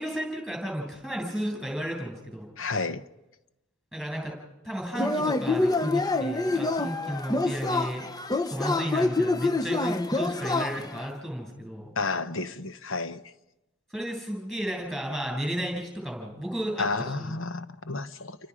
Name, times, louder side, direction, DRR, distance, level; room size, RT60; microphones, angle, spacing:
voice 1, 0.0-2.5 3.9-4.3 4.6-8.1 8.5-11.9 13.9-17.4, equal, ahead, 7.2 m, -33 dB
voice 2, 2.6-3.0 12.0-13.2 16.8-18.4, left 3 dB, 60° left, 1.0 m, -31 dB
Yell / Cheering, 4.9-11.1, left 2 dB, 15° left, 0.7 m, -27 dB
29.5 x 24.0 x 5.0 m
head